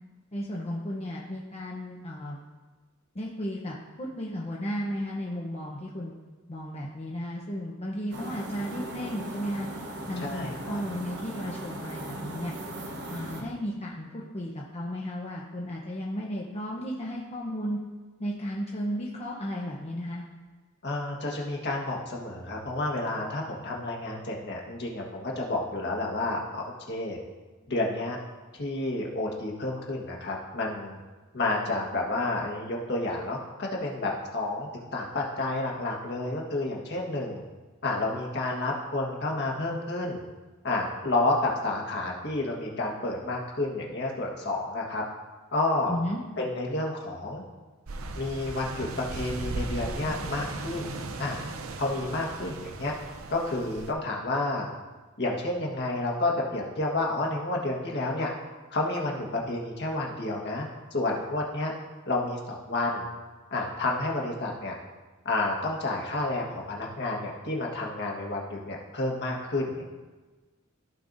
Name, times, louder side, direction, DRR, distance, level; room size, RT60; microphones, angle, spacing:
voice 1, 0.3-2.4 3.1-6.1 6.5-9.7 10.1-12.5 13.1-17.8 18.2-20.2 45.9-46.2, equal, 30° left, -3 dB, 0.8 m, -34 dB
sound 1, 8.1-13.4, right 1 dB, 55° right, 1.1 m, -38 dB
voice 2, 10.2-10.8 20.8-27.2 27.7-28.2 28.6-31.0 31.3-37.4 37.8-40.2 40.6-45.0 45.5-45.9 46.4-47.4 48.2-50.9 51.2-51.4 51.8-52.9 53.3-54.7 55.2-58.3 58.7-61.7 62.1-63.1 63.5-64.7 65.2-69.9, left 2 dB, 55° left, -2 dB, 1.5 m, -30 dB
sound 2, 47.9-53.9, right 2 dB, 85° right, 0.7 m, -37 dB
15.0 x 5.4 x 2.7 m, 1.3 s
head